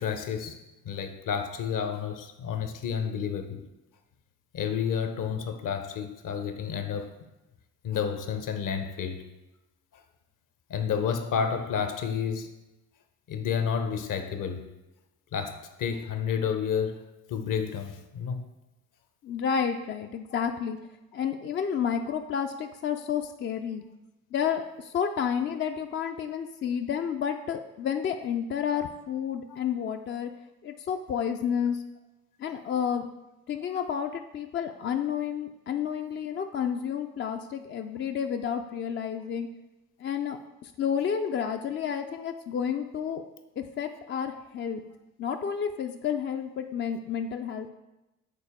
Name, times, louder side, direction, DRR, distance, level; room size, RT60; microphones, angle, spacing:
voice 1, 0.0-3.6 4.5-7.1 7.8-9.2 9.9-10.0 10.7-12.5 13.3-14.7 15.3-18.4 29.5-29.6, left 7 dB, 50° left, 0.8 m, -30 dB
voice 2, 19.2-20.8 21.1-23.8 24.3-30.3 30.6-31.8 32.4-33.1 33.5-39.5 40.0-43.2 43.6-44.8 45.2-47.7, left 7 dB, 30° left, 0.4 m, -30 dB
6.7 x 4.0 x 3.6 m
hypercardioid pair, 55°, 41 cm